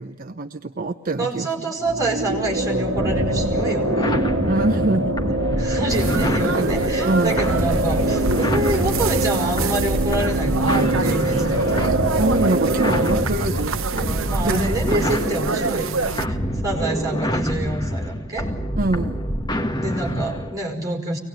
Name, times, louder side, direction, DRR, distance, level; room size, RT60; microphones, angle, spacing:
voice 1, 0.0-1.7 4.5-5.2 6.6-7.4 12.2-14.2 14.4-15.2 18.8-19.2, right 2 dB, 45° right, 6 dB, 0.8 m, -25 dB
voice 2, 1.2-4.2 5.6-12.0 14.3-18.5 19.8-21.2, right 2 dB, 15° right, 0 dB, 5.3 m, -27 dB
sound 1, 1.8-13.3, right 1 dB, 60° right, 1.4 m, -24 dB
sound 2, 3.0-20.6, equal, 20° left, 1.7 m, -26 dB
sound 3, 5.9-16.3, right 3 dB, 75° right, 0.7 m, -27 dB
24.0 x 19.0 x 9.2 m, 1.1 s
head